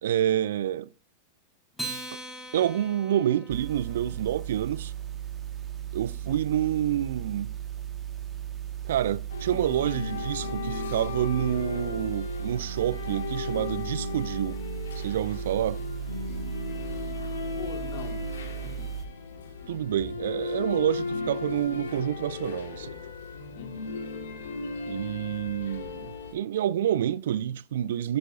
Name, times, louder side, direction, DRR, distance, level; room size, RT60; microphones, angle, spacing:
voice 1, 0.0-0.9 2.5-4.9 5.9-7.6 8.8-14.6 15.0-15.8 19.7-22.9 24.9-28.2, right 11 dB, 60° right, 0.5 m, -28 dB
Acoustic guitar, 1.7-4.4, right 2 dB, 5° left, 5.5 m, -40 dB
sound 1, 3.5-19.1, right 11 dB, 20° right, 1.7 m, -36 dB
voice 2, 6.2-7.1 17.6-18.9 23.5-24.0, left 8 dB, 45° left, 2.4 m, -46 dB
sound 2, 9.3-26.3, left 4 dB, 65° left, 2.0 m, -36 dB
11.5 x 10.5 x 2.7 m
figure-of-eight pair, 90°, 0 cm